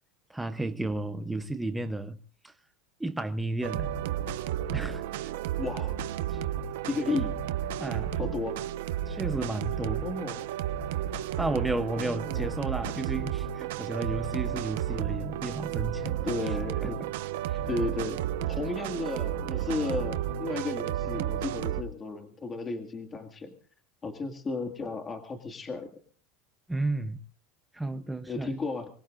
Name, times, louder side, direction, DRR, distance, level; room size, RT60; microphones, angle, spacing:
voice 1, 0.3-2.5 3.0-3.9 4.7-5.3 6.3-6.4 7.8-8.2 9.1-10.0 11.4-16.5 16.8-16.9 17.4-17.6 26.7-27.2 27.7-28.5, right 2 dB, 5° right, 0.8 m, -33 dB
sound 1, 3.6-21.8, right 11 dB, 85° right, 1.1 m, -32 dB
voice 2, 5.6-6.0 6.8-7.4 8.1-8.6 10.0-10.5 12.0-12.5 16.2-17.0 17.7-23.5 24.0-25.9 28.3-28.9, left 3 dB, 20° left, 2.0 m, -34 dB
24.5 x 20.5 x 2.6 m
supercardioid pair, 145°, 0 cm